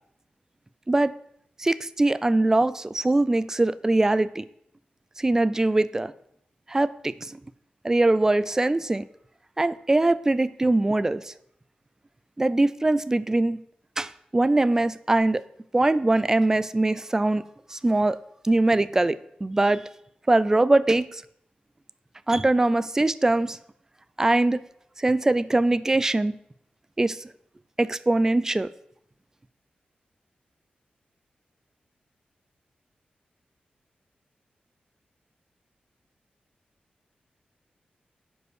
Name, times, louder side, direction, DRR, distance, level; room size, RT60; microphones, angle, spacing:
voice 1, 1.6-4.4 5.2-6.1 6.7-7.4 7.8-9.1 9.6-11.3 12.4-13.6 14.0-15.4 15.7-17.4 17.7-18.2 18.4-19.8 20.3-21.2 22.3-23.6 24.2-24.6 25.0-26.4 27.0-27.3 27.8-28.7, right 2 dB, 15° right, 16 dB, 0.4 m, -22 dB
9.5 x 5.3 x 6.3 m, 0.71 s
wide cardioid pair, 135°, 3 cm